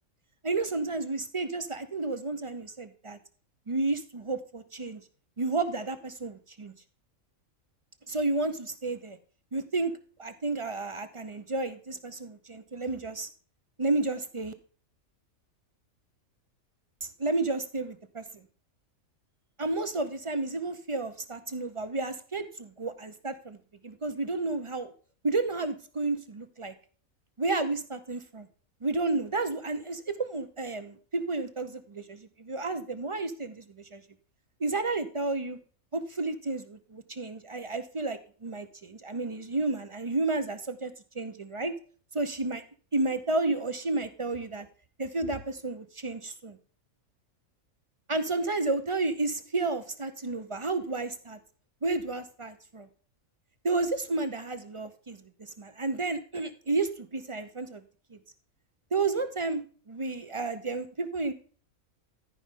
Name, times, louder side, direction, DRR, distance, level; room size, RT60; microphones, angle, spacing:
voice 1, 0.4-3.2 3.7-5.0 5.4-6.7 8.1-9.2 9.5-9.9 10.2-13.3 13.8-14.5 17.0-18.4 19.6-23.6 23.8-24.9 25.2-26.7 27.4-28.5 28.8-34.0 34.6-35.6 35.9-41.7 42.1-42.6 42.9-44.7 45.0-46.6 48.1-51.4 51.8-52.9 53.6-57.8 58.1-58.2 58.9-61.3, right 3 dB, 35° right, 10 dB, 0.5 m, -31 dB
13.5 x 5.4 x 3.6 m, 0.42 s
omnidirectional pair, 1.5 m